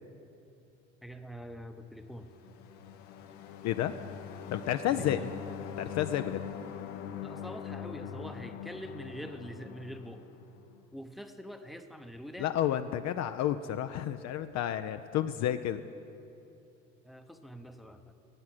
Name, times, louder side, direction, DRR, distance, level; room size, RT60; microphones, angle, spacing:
voice 1, 1.0-2.3 4.9-5.3 7.2-10.3 10.9-12.5 17.0-18.1, equal, ahead, 7 dB, 0.8 m, -44 dB
sound 1, 2.1-10.8, left 8 dB, 65° left, 1.0 m, -43 dB
voice 2, 4.5-5.2 5.8-6.4 12.4-15.8, left 11 dB, 45° left, 9 dB, 0.5 m, -31 dB
11.0 x 8.3 x 9.1 m, 2.8 s
hypercardioid pair, 65°, 40 cm